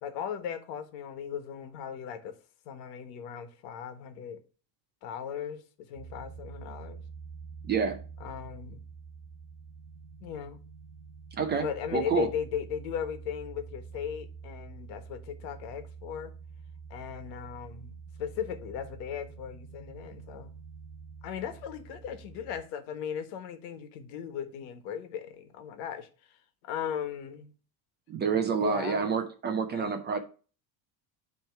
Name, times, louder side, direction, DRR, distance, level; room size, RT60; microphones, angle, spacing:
voice 1, 0.0-2.3 2.6-4.4 5.0-7.0 8.2-8.8 10.2-10.6 11.6-16.3 16.9-20.5 21.2-27.5 28.5-29.1 29.7-30.0, left 8 dB, 80° left, 1.4 m, -37 dB
sound 1, 5.9-22.6, right 5 dB, 50° right, 1.5 m, -47 dB
voice 2, 7.6-8.0 11.3-12.3 28.1-30.2, right 6 dB, 20° right, 0.4 m, -28 dB
9.4 x 3.2 x 4.5 m
cardioid pair, 155°, 49 cm